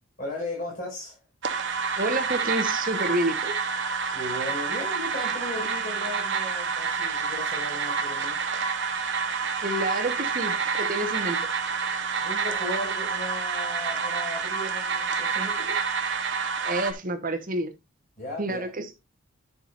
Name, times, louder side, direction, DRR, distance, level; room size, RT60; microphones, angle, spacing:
voice 1, 0.2-1.2 4.1-8.4 12.2-15.8 18.2-18.7, left 1 dB, 40° left, 5.6 m, -36 dB
sound 1, 1.4-16.9, right 5 dB, 55° right, 1.1 m, -28 dB
voice 2, 2.0-3.6 9.6-11.4 16.6-17.7 18.4-18.9, right 2 dB, 40° right, 1.2 m, -28 dB
11.0 x 6.1 x 2.6 m
head